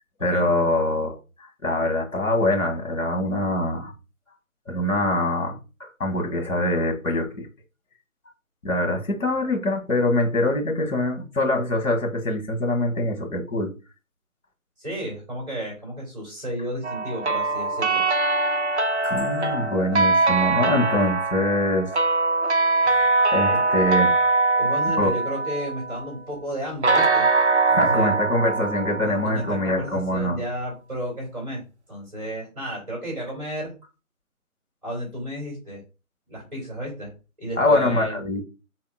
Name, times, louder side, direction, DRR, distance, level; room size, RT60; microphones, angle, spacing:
voice 1, 0.2-1.2 1.6-3.9 4.7-7.5 8.6-13.7 19.0-22.0 23.3-24.1 25.0-25.1 27.7-30.4 37.6-38.4, left 1 dB, 65° left, 1.2 m, -24 dB
voice 2, 14.8-18.0 22.9-23.0 23.5-23.6 24.6-27.3 27.7-28.2 29.0-31.6 31.9-33.7 34.8-35.8 36.3-37.1 37.4-38.2, equal, 30° right, 2.0 m, -32 dB
sound 1, 16.8-26.1 26.8-29.7, right 3 dB, 55° right, 0.5 m, -22 dB
4.4 x 2.8 x 2.3 m
figure-of-eight pair, 170°, 42 cm